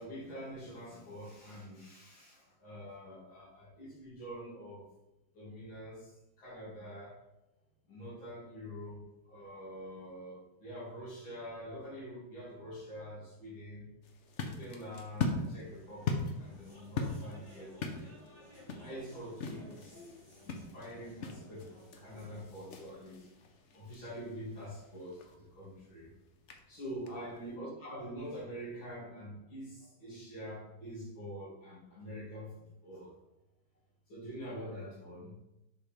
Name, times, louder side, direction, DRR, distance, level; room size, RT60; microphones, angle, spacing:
voice 1, 0.0-4.9 5.3-7.2 7.9-13.9 14.4-18.1 18.8-20.0 20.4-23.3 23.7-26.1 26.7-33.1 34.1-35.4, equal, 80° left, -6 dB, 3.2 m, -45 dB
sound 1, 14.0-27.6, left 3 dB, 65° left, 0.7 m, -41 dB
sound 2, 15.6-22.4, left 1 dB, 15° left, 1.8 m, -56 dB
6.4 x 5.4 x 3.3 m, 0.93 s
omnidirectional pair, 2.2 m